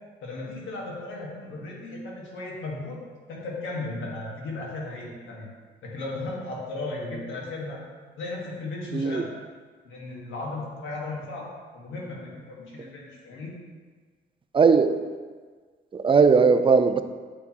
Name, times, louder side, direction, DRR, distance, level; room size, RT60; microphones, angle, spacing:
voice 1, 0.2-3.0 3.3-5.5 5.8-7.8 8.2-9.3 9.8-11.5 11.7-13.6, left 2 dB, 80° left, -3 dB, 1.6 m, -35 dB
voice 2, 14.5-15.1 15.9-17.0, right 5 dB, 25° right, 9 dB, 0.3 m, -19 dB
8.0 x 4.3 x 2.9 m, 1.5 s
cardioid pair, 90°, 20 cm